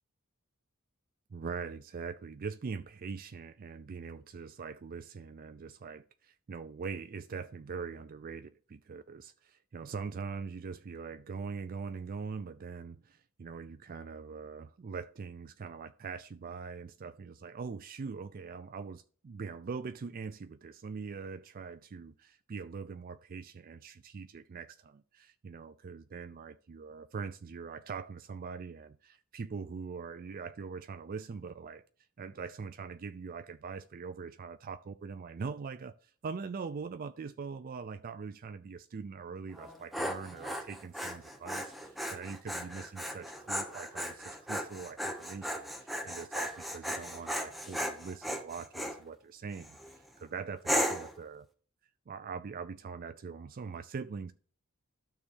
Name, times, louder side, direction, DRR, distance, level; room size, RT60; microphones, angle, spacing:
voice 1, 1.3-31.8 32.2-51.5 52.1-54.3, right 5 dB, 40° right, 0.4 m, -42 dB
Dog, 39.5-49.0 49.5-49.9 50.6-51.2, equal, ahead, 1.1 m, -36 dB
12.5 x 6.5 x 2.7 m
head